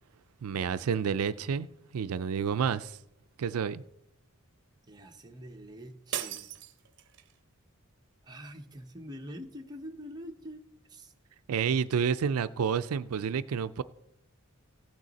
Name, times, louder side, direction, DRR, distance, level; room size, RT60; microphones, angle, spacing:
voice 1, 0.4-1.7 1.9-3.0 3.4-3.8 11.5-13.8, right 7 dB, 75° right, 0.4 m, -29 dB
voice 2, 4.9-6.5 8.2-10.6 10.9-11.1, equal, 20° right, 0.9 m, -45 dB
sound 1, 6.1-7.4, right 10 dB, 55° right, 0.7 m, -38 dB
15.5 x 9.1 x 4.0 m
head